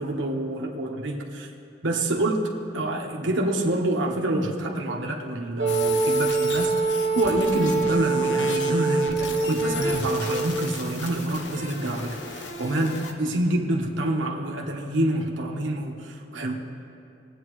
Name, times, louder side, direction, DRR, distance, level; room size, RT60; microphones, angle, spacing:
voice 1, 0.0-1.5 1.8-16.5, right 1 dB, 80° right, 0 dB, 1.2 m, -27 dB
Wind instrument woodwind instrument, 5.6-10.7, right 4 dB, 35° right, 1.3 m, -25 dB
sound 1, 5.7-13.1, left 4 dB, 70° left, 1.0 m, -36 dB
20.0 x 8.8 x 3.2 m, 2.6 s
head